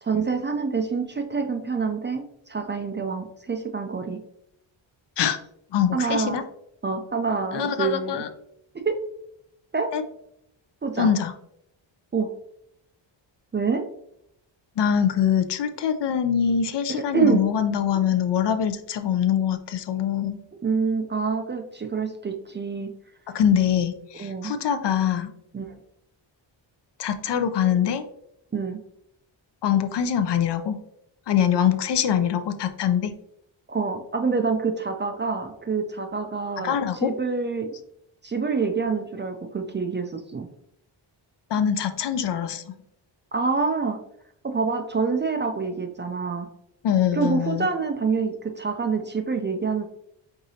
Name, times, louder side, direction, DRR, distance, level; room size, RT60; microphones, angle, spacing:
voice 1, 0.0-4.2 5.9-6.4 6.8-8.3 8.7-9.0 9.7-9.9 10.8-11.1 12.1-12.3 13.5-13.8 16.9-17.4 20.6-22.9 24.2-24.5 25.5-25.8 28.5-28.8 33.7-37.8 38.2-40.5 43.3-44.0 44.4-46.5 47.1-49.8, right 5 dB, 25° right, 6 dB, 0.3 m, -26 dB
voice 2, 5.7-6.4 7.5-8.3 9.9-10.0 11.0-11.3 14.8-20.4 23.3-25.3 27.0-28.0 29.6-30.8 31.3-33.1 36.6-37.1 41.5-42.6 46.8-47.7, left 8 dB, 60° left, 9 dB, 0.5 m, -23 dB
4.8 x 3.8 x 2.7 m, 0.76 s
wide cardioid pair, 120°, 47 cm